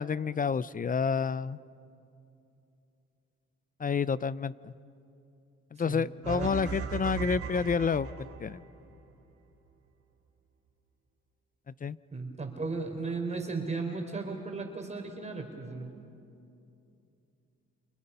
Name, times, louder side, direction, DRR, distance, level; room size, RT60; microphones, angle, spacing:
voice 1, 0.0-1.6 3.8-4.7 5.7-8.1 8.4-8.6 11.8-12.0, left 6 dB, 30° left, 18 dB, 0.5 m, -29 dB
voice 2, 5.9-6.5 12.1-15.9, right 3 dB, 20° right, 3 dB, 3.7 m, -35 dB
sound 1, 6.2-8.6, right 6 dB, 50° right, 2.6 m, -37 dB
29.5 x 29.5 x 5.6 m, 2.7 s
cardioid pair, 90°, 30 cm